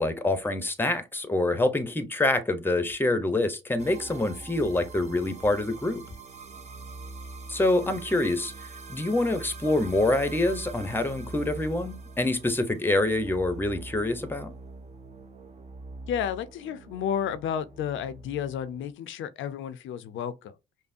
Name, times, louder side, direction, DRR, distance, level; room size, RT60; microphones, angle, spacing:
voice 1, 0.0-6.0 7.5-8.5 8.9-14.5, left 2 dB, 10° left, 0.8 m, -26 dB
sound 1, 3.8-18.9, right 3 dB, 35° right, 0.8 m, -43 dB
voice 2, 16.1-20.6, left 8 dB, 80° left, 0.6 m, -32 dB
5.3 x 2.1 x 2.6 m
cardioid pair, 90°, 20 cm